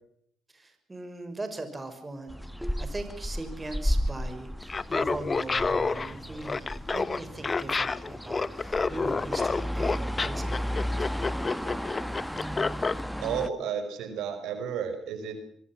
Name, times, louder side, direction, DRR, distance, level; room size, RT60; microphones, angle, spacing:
voice 1, 0.5-2.4 2.8-11.1, right 2 dB, 20° right, 8 dB, 6.1 m, -40 dB
sound 1, 2.3-13.5, equal, ahead, 1.6 m, -34 dB
Laughter, 4.6-13.0, left 4 dB, 30° left, 1.4 m, -29 dB
voice 2, 13.2-15.4, right 7 dB, 90° right, 8 dB, 5.6 m, -32 dB
25.0 x 23.0 x 6.2 m, 0.68 s
cardioid pair, 90°, 0 cm